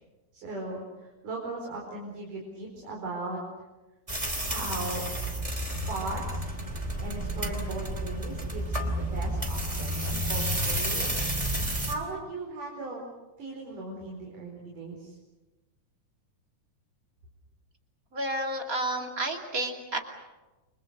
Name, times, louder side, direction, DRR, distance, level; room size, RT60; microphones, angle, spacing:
voice 1, 0.3-3.4 4.4-5.1 5.5-6.5 7.0-13.0 13.4-15.2, right 2 dB, 75° right, -1 dB, 6.2 m, -38 dB
sound 1, 4.1-11.9, right 1 dB, 10° right, 2.6 m, -31 dB
voice 2, 18.1-20.0, right 1 dB, 25° right, 3 dB, 2.9 m, -31 dB
30.0 x 26.0 x 6.7 m, 1.1 s
omnidirectional pair, 3.7 m